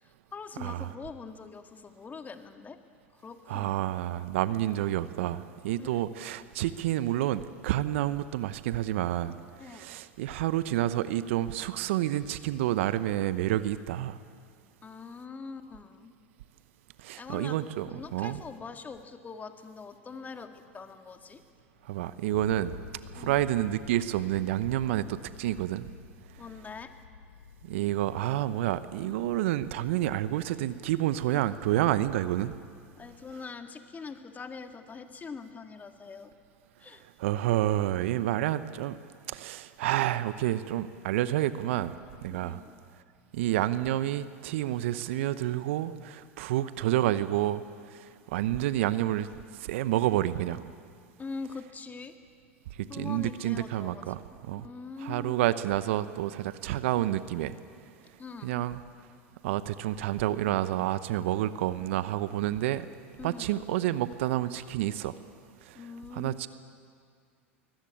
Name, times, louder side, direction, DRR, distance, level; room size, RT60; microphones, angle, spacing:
voice 1, 0.0-2.8 3.1-3.9 5.8-6.0 9.6-9.9 14.8-16.1 17.2-17.6 17.9-21.4 23.1-23.4 26.4-26.9 32.9-36.3 36.8-37.0 42.3-42.7 51.2-52.1 52.9-54.0 54.6-55.4 58.2-58.6 63.2-63.5 65.7-66.5, left 4 dB, 25° left, 7 dB, 1.9 m, -43 dB
voice 2, 0.6-0.9 3.5-14.2 17.0-18.4 21.8-22.7 23.1-25.9 27.6-32.6 37.2-39.0 39.3-42.0 42.2-42.6 43.3-47.6 47.9-49.3 49.5-50.6 52.8-54.7 55.0-57.6 58.4-58.8 59.4-62.9 63.2-65.2 65.6-65.8 66.1-66.5, right 13 dB, 65° right, 14 dB, 0.9 m, -29 dB
sound 1, 21.2-33.4, left 5 dB, 90° left, 1.1 m, -50 dB
22.0 x 19.5 x 8.7 m, 2.1 s
hypercardioid pair, 85°, 7 cm